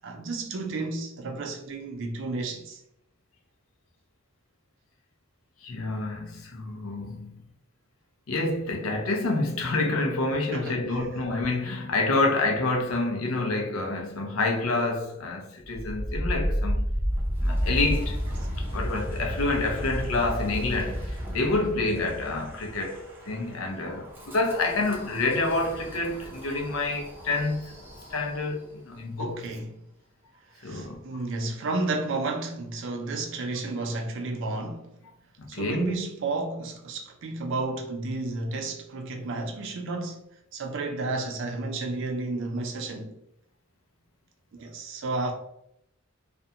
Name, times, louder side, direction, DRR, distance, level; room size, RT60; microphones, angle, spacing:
voice 1, 0.0-2.8 10.5-11.1 29.2-29.7 30.6-34.9 35.5-40.2 40.5-43.2 44.5-45.3, right 3 dB, 60° right, 0.4 m, -32 dB
voice 2, 5.6-7.4 8.3-16.9 17.4-18.2 18.7-27.6 28.1-29.5 30.6-31.0 35.4-35.9, left 2 dB, 80° left, 0.6 m, -28 dB
Wind, 15.6-28.6, equal, 10° right, 0.6 m, -32 dB
2.5 x 2.2 x 2.7 m
head